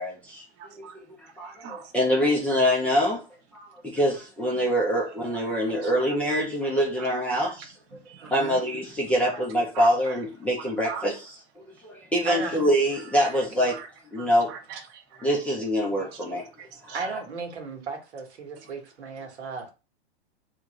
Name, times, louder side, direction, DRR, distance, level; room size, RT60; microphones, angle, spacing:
voice 1, 0.0-3.2 3.5-7.7 8.2-13.8 14.1-14.5 15.2-16.5 16.9-17.2, equal, 5° left, 0.4 m, -25 dB
voice 2, 0.6-1.0 1.4-1.9 5.2-5.6 5.8-5.9 6.3-6.4 7.0-7.1 8.1-8.3 9.3-9.4 9.7-9.9 10.8-11.0 13.2-13.3 13.7-13.9 14.2-15.3 16.9-17.0, right 7 dB, 40° right, 0.8 m, -41 dB
voice 3, 8.2-8.6 12.2-12.6 16.9-19.7, right 4 dB, 80° right, 1.2 m, -35 dB
3.4 x 2.5 x 3.0 m
hypercardioid pair, 135°, 33 cm